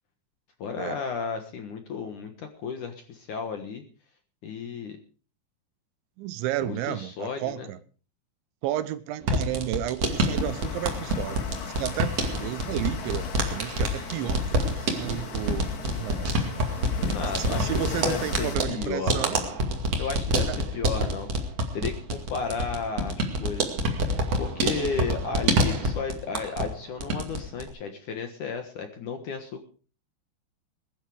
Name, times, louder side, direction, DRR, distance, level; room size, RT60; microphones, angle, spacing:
voice 1, 0.6-3.8 4.4-5.0 6.6-7.7 17.1-19.5 20.0-21.3 21.7-23.7 24.4-29.6, left 5 dB, 60° left, 6 dB, 2.2 m, -33 dB
voice 2, 6.2-7.8 8.6-11.5 11.8-16.6 17.4-19.4 20.5-20.6, right 13 dB, 80° right, 13 dB, 3.1 m, -32 dB
sound 1, 9.2-26.7 27.0-27.7, right 1 dB, 40° right, 2.8 m, -27 dB
sound 2, 10.0-18.6, left 6 dB, 85° left, 5.2 m, -38 dB
21.0 x 10.5 x 4.9 m, 0.39 s
omnidirectional pair, 5.4 m